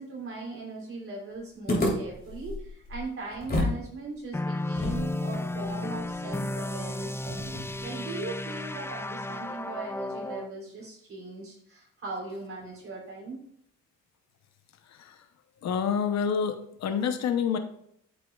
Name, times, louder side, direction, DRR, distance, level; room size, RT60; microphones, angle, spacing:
voice 1, 0.0-13.4, right 3 dB, 45° right, -3 dB, 3.4 m, -39 dB
sound 1, 1.7-3.8 4.1-4.2 4.7-7.9, left 1 dB, 30° left, 3.4 m, -32 dB
sound 2, 4.3-10.5, left 2 dB, 10° left, 0.4 m, -33 dB
voice 2, 15.6-17.6, left 7 dB, 60° left, 8 dB, 0.9 m, -27 dB
8.6 x 7.7 x 2.4 m, 0.70 s
cardioid pair, 90°, 30 cm